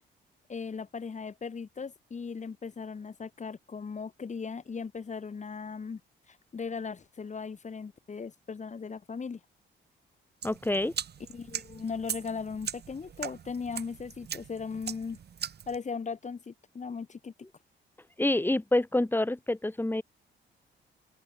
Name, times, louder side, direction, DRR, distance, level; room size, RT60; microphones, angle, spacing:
voice 1, 0.5-6.0 6.3-9.4 11.3-15.2 15.7-17.3, left 5 dB, 35° left, 5.8 m, -38 dB
voice 2, 10.4-10.9 18.2-20.0, left 1 dB, 10° left, 3.3 m, -27 dB
sound 1, 10.4-15.8, right 8 dB, 55° right, 7.1 m, -40 dB
open air
cardioid pair, 90°, 20 cm